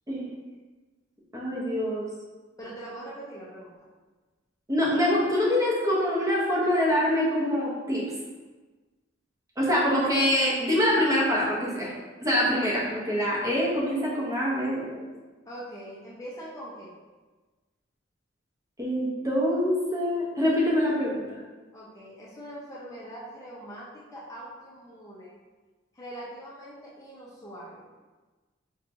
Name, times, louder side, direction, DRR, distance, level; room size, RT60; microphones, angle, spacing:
voice 1, 1.3-2.1 4.7-8.1 9.6-11.9 12.2-14.9 18.8-21.4, equal, 15° right, -5 dB, 0.7 m, -25 dB
voice 2, 2.6-3.8 15.5-17.0 21.7-25.3 25.9-27.8, right 1 dB, 15° left, -7 dB, 0.6 m, -42 dB
4.6 x 2.9 x 2.5 m, 1.3 s
head